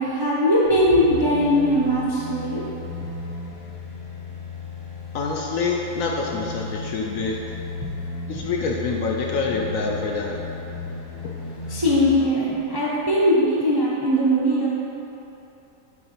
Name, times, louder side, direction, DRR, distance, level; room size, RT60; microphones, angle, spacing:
voice 1, 0.0-2.6 7.8-7.9 11.7-14.7, equal, 30° right, -7 dB, 0.4 m, -20 dB
sound 1, 0.6-12.2 12.6-12.7, left 3 dB, 50° left, 1.1 m, -35 dB
voice 2, 5.1-7.4 8.3-10.3, left 4 dB, 70° left, -1 dB, 0.8 m, -26 dB
8.0 x 3.7 x 4.3 m, 3.0 s
omnidirectional pair, 1.7 m